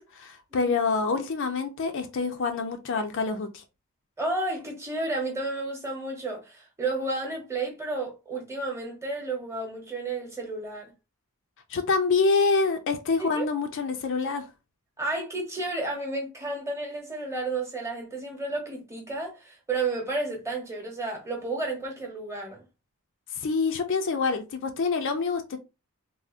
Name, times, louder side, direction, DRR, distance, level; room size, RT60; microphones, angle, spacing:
voice 1, 0.0-3.5 11.7-14.5 23.4-25.6, left 4 dB, 55° left, 0.4 m, -26 dB
voice 2, 4.2-10.9 13.2-13.5 15.0-22.6, right 2 dB, 10° right, 0.9 m, -32 dB
3.4 x 2.1 x 2.4 m
head